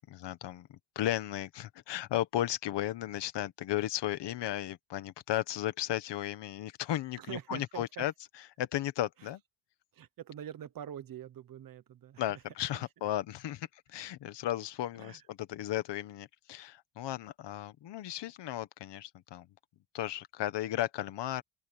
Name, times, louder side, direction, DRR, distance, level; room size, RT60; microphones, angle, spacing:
voice 1, 0.0-9.4 12.2-19.5 19.9-21.4, left 13 dB, 60° left, 1.4 m, -35 dB
voice 2, 7.2-8.0 9.9-12.2 15.0-15.2, right 10 dB, 45° right, 1.1 m, -44 dB
open air
cardioid pair, 170°, 47 cm